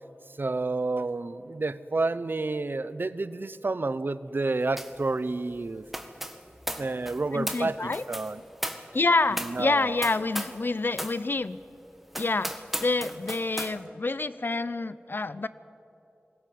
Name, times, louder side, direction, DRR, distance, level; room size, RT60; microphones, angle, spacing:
voice 1, 0.4-5.9 6.8-8.4 9.3-10.0, right 3 dB, 55° right, 15 dB, 0.8 m, -30 dB
sound 1, 4.8-5.0 5.3-10.6 10.9-11.2 11.6-11.7 12.1-13.7, equal, 5° right, 1.8 m, -36 dB
voice 2, 7.3-8.0 8.9-11.6 12.2-12.5 12.8-15.5, left 3 dB, 55° left, 15 dB, 0.7 m, -27 dB
21.5 x 17.5 x 9.4 m, 2.8 s
wide cardioid pair, 55°, 4 cm